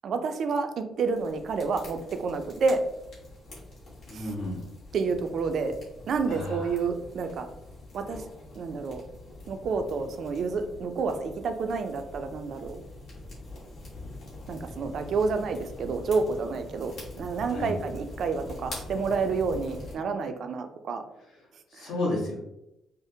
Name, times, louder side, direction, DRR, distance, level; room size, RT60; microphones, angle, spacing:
voice 1, 0.0-2.8 4.1-4.3 4.9-5.7 6.1-7.5 7.9-8.2 8.6-9.0 9.5-12.8 14.5-16.9 17.2-21.0 21.8-21.9, right 4 dB, 45° right, 7 dB, 0.4 m, -29 dB
sound 1, 1.0-20.0, left 2 dB, 55° left, 1.3 m, -44 dB
voice 2, 4.1-4.6 6.3-6.8 17.5-17.7 21.7-22.3, left 2 dB, 70° left, -5 dB, 1.3 m, -32 dB
4.9 x 2.0 x 2.7 m, 0.87 s
cardioid pair, 175°, 0 cm